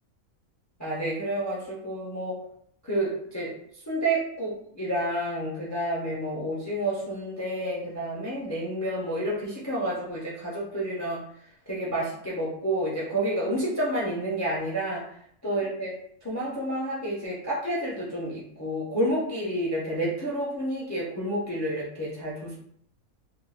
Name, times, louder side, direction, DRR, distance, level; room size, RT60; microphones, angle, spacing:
voice 1, 0.8-2.4 2.8-3.5 3.9-11.2 11.7-15.0 15.4-15.9 16.2-22.6, right 1 dB, 25° left, -6 dB, 0.4 m, -29 dB
3.6 x 2.1 x 2.5 m, 0.66 s
omnidirectional pair, 1.4 m